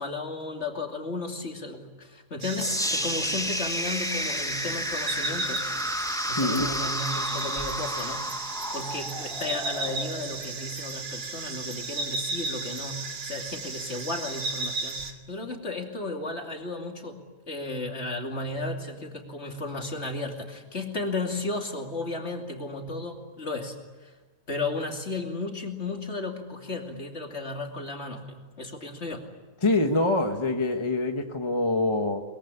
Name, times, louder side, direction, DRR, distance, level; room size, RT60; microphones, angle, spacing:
voice 1, 0.0-5.8 6.3-17.2 17.5-24.1 24.5-29.3, left 2 dB, 50° left, 3 dB, 3.0 m, -34 dB
sound 1, 2.4-15.1, right 3 dB, 70° right, 2.3 m, -35 dB
sound 2, 2.6-10.6, equal, 5° left, 0.7 m, -31 dB
sound 3, 3.0-8.0, right 1 dB, 50° right, 5.7 m, -53 dB
voice 2, 6.3-6.7 29.6-32.2, left 2 dB, 20° left, 4 dB, 1.4 m, -25 dB
22.5 x 22.0 x 9.9 m, 1.2 s
omnidirectional pair, 1.5 m